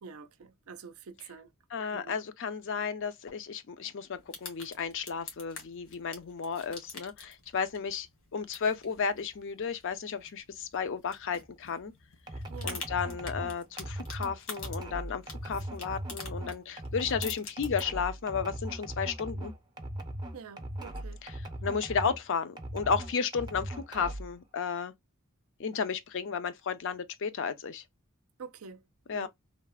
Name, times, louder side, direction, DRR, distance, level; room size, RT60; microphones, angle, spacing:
voice 1, 0.0-1.5 1.9-2.2 12.5-12.9 20.3-21.2 28.4-28.8 29.1-29.3, right 6 dB, 75° right, 0.5 m, -47 dB
voice 2, 1.7-8.1 8.3-11.9 12.6-19.5 21.2-24.9 25.6-27.8 29.1-29.3, left 6 dB, 60° left, 0.5 m, -33 dB
sound 1, 4.1-17.8, left 4 dB, 80° left, 1.3 m, -47 dB
sound 2, 12.3-22.2 22.6-24.3, right 1 dB, 20° right, 0.5 m, -39 dB
3.2 x 2.1 x 2.3 m
head